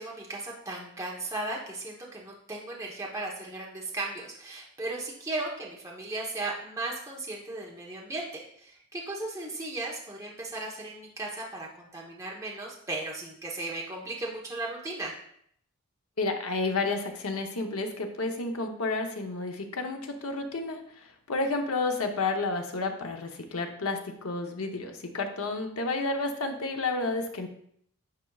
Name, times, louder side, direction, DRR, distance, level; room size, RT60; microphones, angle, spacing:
voice 1, 0.0-15.2, right 2 dB, 15° right, -3 dB, 1.0 m, -36 dB
voice 2, 16.2-20.8 21.3-27.5, left 3 dB, 75° left, 4 dB, 0.8 m, -31 dB
9.6 x 5.1 x 2.4 m, 0.67 s
head